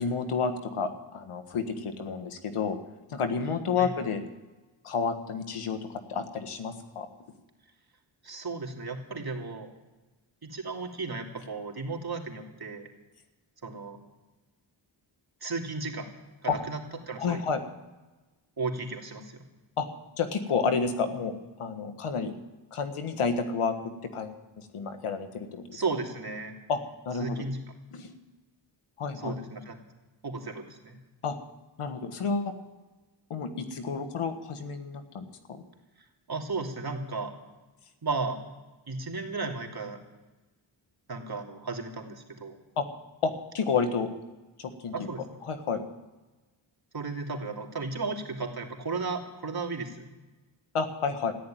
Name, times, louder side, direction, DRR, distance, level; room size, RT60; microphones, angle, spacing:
voice 1, 0.0-2.8 3.1-4.2 4.8-7.1 16.5-16.6 17.2-17.6 19.8-19.9 20.2-22.3 22.7-25.8 26.7-26.8 27.0-27.5 27.9-28.1 29.0-29.3 31.2-31.4 31.8-32.5 33.3-35.6 42.8-42.9 43.2-44.1 44.6-45.1 45.4-45.8 50.7-51.3, left 5 dB, 85° left, 8 dB, 1.6 m, -30 dB
voice 2, 8.2-9.7 10.4-12.9 13.6-14.0 15.4-16.1 16.4-16.8 17.1-17.4 18.6-19.4 25.7-26.6 27.2-27.6 29.2-29.8 30.2-31.0 36.3-37.3 38.0-38.4 38.9-40.0 41.1-42.6 44.9-45.2 46.9-50.1, right 3 dB, 45° right, 2 dB, 2.9 m, -34 dB
14.5 x 11.0 x 9.1 m, 1.2 s
cardioid pair, 50°, 50 cm